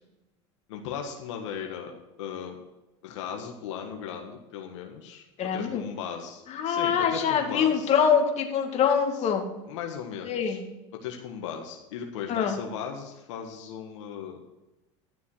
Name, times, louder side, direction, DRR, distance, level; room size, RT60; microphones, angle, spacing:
voice 1, 0.7-2.6 3.0-5.2 5.5-7.9 9.1-9.3 9.6-10.6 10.9-14.4, left 7 dB, 85° left, 2 dB, 1.5 m, -37 dB
voice 2, 5.4-5.8 6.5-9.5 10.3-10.7 12.3-12.6, left 7 dB, 45° left, 4 dB, 2.2 m, -24 dB
12.5 x 7.0 x 6.4 m, 1.0 s
supercardioid pair, 100°, 15 cm